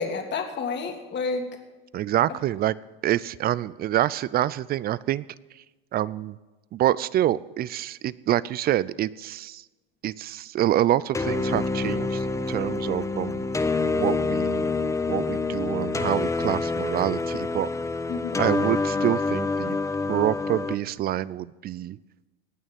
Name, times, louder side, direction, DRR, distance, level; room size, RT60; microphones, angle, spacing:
voice 1, 0.0-1.6 2.3-2.4 18.1-18.5, left 4 dB, 35° left, 4 dB, 2.2 m, -30 dB
voice 2, 1.9-2.8 3.0-5.2 5.5-5.6 5.9-6.4 6.7-9.6 10.0-13.4 13.9-14.7 15.1-17.7 18.4-19.8 20.1-22.0, right 13 dB, 30° right, 20 dB, 0.4 m, -26 dB
sound 1, 11.1-20.7, left 3 dB, 10° left, 1.0 m, -27 dB
18.5 x 6.4 x 9.0 m, 1.2 s
hypercardioid pair, 90°, 29 cm